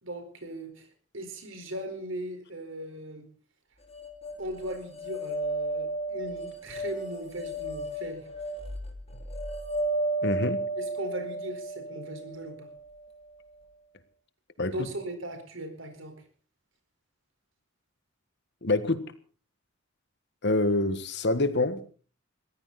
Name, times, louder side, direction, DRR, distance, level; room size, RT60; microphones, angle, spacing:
voice 1, 0.0-0.9 1.1-3.3 4.4-8.3 10.8-12.7 14.7-16.2, right 1 dB, 70° right, 4.6 m, -38 dB
sound 1, 3.9-13.1, right 2 dB, 30° left, 2.9 m, -33 dB
voice 2, 10.2-10.6 14.6-14.7 18.6-19.0 20.4-21.9, left 2 dB, 55° left, 1.5 m, -26 dB
22.0 x 15.5 x 4.2 m
head